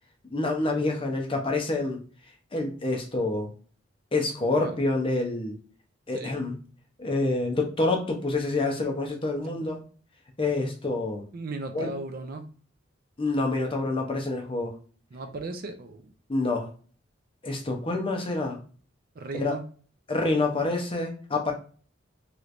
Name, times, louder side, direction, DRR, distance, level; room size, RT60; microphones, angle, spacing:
voice 1, 0.3-2.0 2.5-3.5 4.1-5.6 6.1-6.5 7.0-9.8 10.4-11.2 11.7-11.9 13.2-14.7 16.3-16.7 17.4-18.6 19.3-19.5 20.1-21.5, left 2 dB, 25° left, 0.7 m, -27 dB
voice 2, 11.3-12.5 15.1-16.1 19.1-19.7, right 3 dB, 50° right, 0.5 m, -36 dB
3.1 x 3.1 x 2.5 m
head